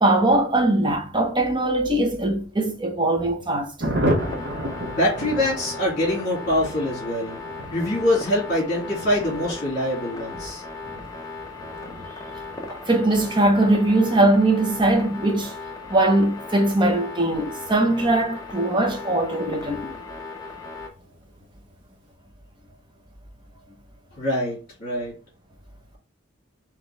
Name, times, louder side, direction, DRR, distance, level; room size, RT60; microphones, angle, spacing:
voice 1, 0.0-3.7 12.7-15.5 15.9-19.8, right 1 dB, 20° right, 0.8 m, -21 dB
Thunder, 3.8-19.9 20.2-20.3 20.6-20.7 21.0-21.4, equal, 55° right, 0.9 m, -34 dB
sound 1, 4.2-20.9, left 3 dB, 15° left, 0.6 m, -37 dB
voice 2, 4.8-7.4 7.7-10.6 19.8-20.1 24.2-25.1, left 1 dB, 35° left, 2.1 m, -24 dB
4.2 x 3.0 x 3.3 m
head